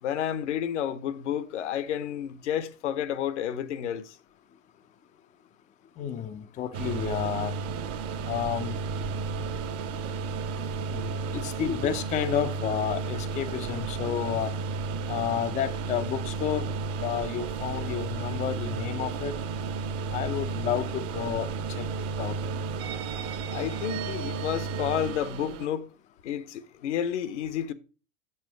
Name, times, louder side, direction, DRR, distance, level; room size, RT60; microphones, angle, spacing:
voice 1, 0.0-4.2 23.5-25.9 26.2-27.7, left 9 dB, 65° left, 0.8 m, -30 dB
voice 2, 6.0-7.6 8.2-8.8 10.9-14.5 15.1-16.7 17.0-19.3 20.1-21.5 21.8-21.9 22.2-22.4, left 9 dB, 20° left, 0.5 m, -31 dB
sound 1, 6.7-25.7, right 4 dB, 40° right, 1.0 m, -33 dB
7.4 x 5.6 x 5.0 m
figure-of-eight pair, 90°, 39 cm